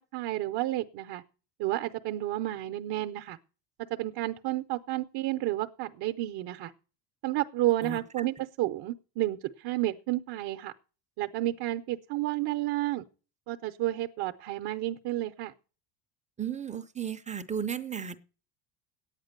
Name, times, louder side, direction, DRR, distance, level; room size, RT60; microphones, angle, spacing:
voice 1, 0.1-1.2 1.6-3.4 3.9-6.7 7.2-10.7 11.2-13.0 13.5-15.5, right 15 dB, 50° right, 7 dB, 0.7 m, -31 dB
voice 2, 7.8-8.3 16.4-18.2, right 7 dB, 15° right, 10 dB, 0.5 m, -35 dB
10.0 x 9.1 x 6.6 m, 0.36 s
cardioid pair, 125°, 49 cm